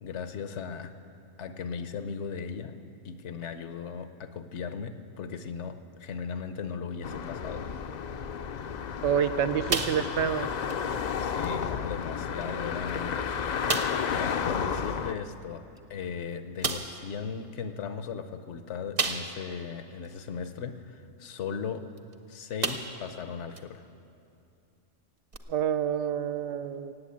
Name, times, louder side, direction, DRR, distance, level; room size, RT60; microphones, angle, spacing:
voice 1, 0.0-0.9 1.4-2.8 3.0-7.7 11.2-13.1 14.1-15.6 15.9-21.9 22.3-23.8, left 6 dB, 75° left, 9 dB, 1.1 m, -37 dB
sound 1, 7.0-15.1, left 7 dB, 55° left, 0.5 m, -32 dB
voice 2, 9.0-10.5 25.5-26.9, right 8 dB, 80° right, 11 dB, 0.9 m, -28 dB
sound 2, 9.7-10.4 10.7-10.9 11.4-11.5 12.4-12.5 12.9-13.0 13.7-14.1 15.8-15.9 16.6-17.0 19.0-19.5 20.0-20.1 22.0-22.1 22.6-23.1 23.6-23.7 25.3-25.4, right 4 dB, 35° right, 0.7 m, -31 dB
18.0 x 8.1 x 8.4 m, 2.6 s
omnidirectional pair, 1.2 m